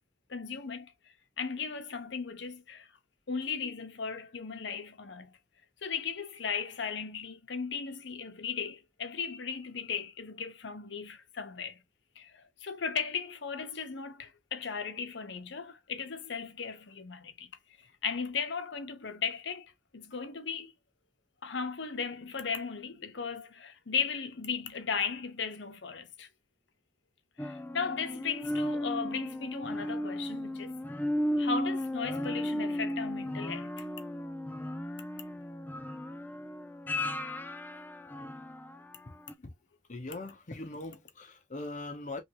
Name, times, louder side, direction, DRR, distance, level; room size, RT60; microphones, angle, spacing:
voice 1, 0.3-0.9 1.4-2.9 3.3-5.3 5.8-11.8 12.2-12.3 12.6-17.5 18.0-20.7 21.4-26.3 27.4-30.7 31.4-33.8, left 6 dB, 70° left, 0.8 m, -36 dB
sound 1, 27.4-38.9 39.3-39.4, left 1 dB, 10° left, 0.3 m, -35 dB
voice 2, 39.9-42.2, left 2 dB, 40° left, 0.7 m, -40 dB
3.2 x 2.6 x 2.8 m
head